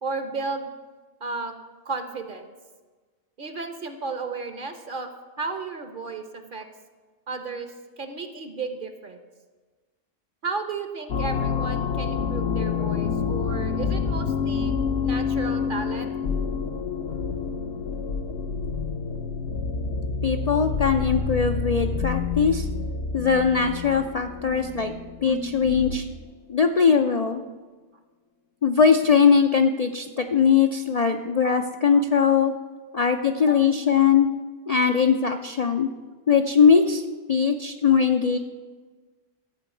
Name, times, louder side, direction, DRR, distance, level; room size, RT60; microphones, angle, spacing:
voice 1, 0.0-0.7 1.2-1.5 1.8-2.5 3.4-5.1 5.4-6.7 7.3-9.2 10.4-14.7 15.0-16.1 31.4-31.6 31.9-32.1 32.7-32.9 33.5-33.6, right 4 dB, 45° right, 8 dB, 1.0 m, -33 dB
sound 1, 11.1-26.1, left 5 dB, 65° left, 0.9 m, -28 dB
voice 2, 20.2-22.7 23.1-24.9 25.2-26.0 26.5-27.4 28.6-32.5 32.9-34.3 34.7-35.9 36.3-37.0 37.3-38.4, left 6 dB, 50° left, 5 dB, 0.5 m, -20 dB
13.5 x 4.6 x 8.3 m, 1.3 s
omnidirectional pair, 1.2 m